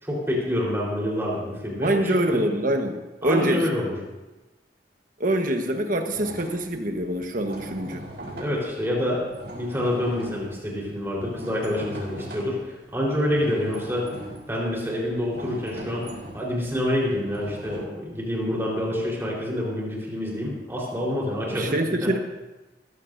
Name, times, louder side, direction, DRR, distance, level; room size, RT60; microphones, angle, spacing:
voice 1, 0.0-2.5 3.2-3.9 8.4-9.3 9.5-14.1 14.5-16.1 16.3-22.2, left 1 dB, 15° right, -4 dB, 4.2 m, -27 dB
voice 2, 1.8-3.7 5.2-8.1 21.5-22.2, right 1 dB, 50° right, 4 dB, 1.3 m, -25 dB
sound 1, 6.1-12.8 13.3-17.8, right 1 dB, 70° right, 4.7 m, -40 dB
20.5 x 15.0 x 2.7 m, 1.1 s
head